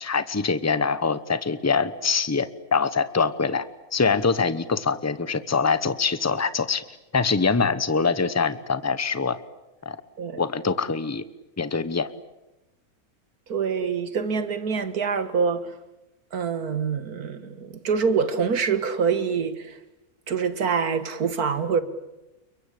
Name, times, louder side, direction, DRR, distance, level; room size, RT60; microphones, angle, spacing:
voice 1, 0.0-3.7 3.9-6.8 7.1-9.4 9.8-10.0 10.4-11.2 11.6-12.1, left 5 dB, 15° left, 0.8 m, -24 dB
voice 2, 13.5-15.7 16.3-19.8 20.3-21.8, right 6 dB, 80° right, 2.1 m, -25 dB
30.0 x 22.5 x 8.5 m
omnidirectional pair, 1.6 m